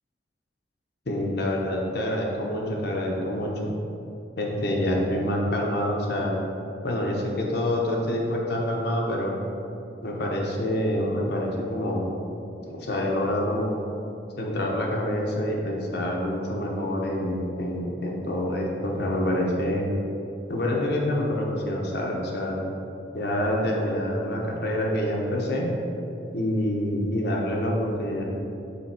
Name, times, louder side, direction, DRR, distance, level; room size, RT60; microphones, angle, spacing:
voice 1, 1.1-3.7 4.4-6.3 6.8-9.4 10.0-12.1 12.7-13.7 14.4-19.9 20.5-22.6 23.1-25.7 26.3-28.2, left 1 dB, 65° left, -1 dB, 0.9 m, -26 dB
5.9 x 3.9 x 4.3 m, 2.8 s
head